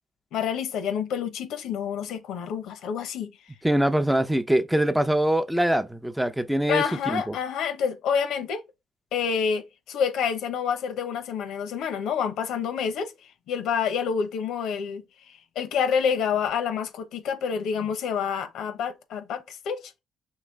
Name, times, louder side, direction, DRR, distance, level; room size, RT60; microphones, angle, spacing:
voice 1, 0.3-3.3 6.7-8.6 9.1-13.1 13.5-19.8, left 7 dB, 85° left, 0.9 m, -28 dB
voice 2, 3.6-7.3, right 1 dB, 5° right, 0.6 m, -23 dB
4.9 x 3.2 x 3.3 m
cardioid pair, 90°, 0 cm